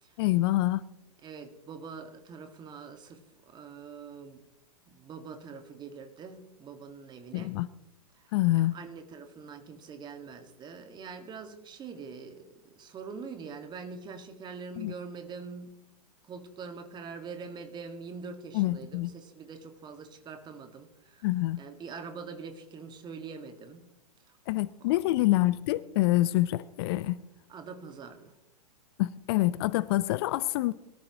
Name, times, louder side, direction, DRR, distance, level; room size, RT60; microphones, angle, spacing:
voice 1, 0.2-0.8 7.3-7.7 8.3-8.7 14.8-14.9 18.5-19.1 21.2-21.6 24.5-27.2 29.0-30.7, left 17 dB, 40° left, 0.5 m, -26 dB
voice 2, 1.2-4.4 4.9-7.6 8.1-15.7 16.3-21.3 21.6-23.9 24.3-24.4 24.9-25.0 27.5-28.3, right 5 dB, 20° right, 1.7 m, -44 dB
23.0 x 13.5 x 3.0 m
figure-of-eight pair, 105°, 19 cm